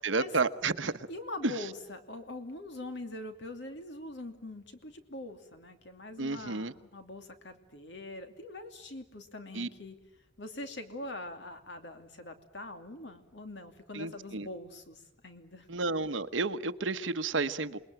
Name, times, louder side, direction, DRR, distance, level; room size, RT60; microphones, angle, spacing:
voice 1, 0.0-1.1 1.4-1.6 6.2-6.7 9.5-9.7 13.9-14.5 15.7-17.8, right 3 dB, 80° right, 1.1 m, -31 dB
voice 2, 0.8-10.0 10.4-15.7, left 2 dB, 65° left, 2.7 m, -43 dB
28.0 x 21.0 x 9.1 m
head